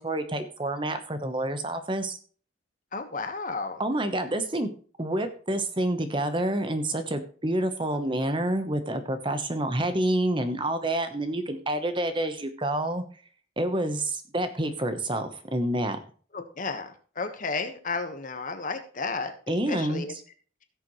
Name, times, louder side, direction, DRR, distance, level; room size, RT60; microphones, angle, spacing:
voice 1, 0.0-2.2 3.8-4.7 5.0-13.0 13.6-16.0 19.5-20.1, right 1 dB, 25° right, 9 dB, 1.0 m, -28 dB
voice 2, 2.9-3.8 16.3-19.3 19.7-20.1, left 4 dB, 45° left, 7 dB, 1.3 m, -33 dB
16.5 x 6.8 x 3.1 m, 0.41 s
head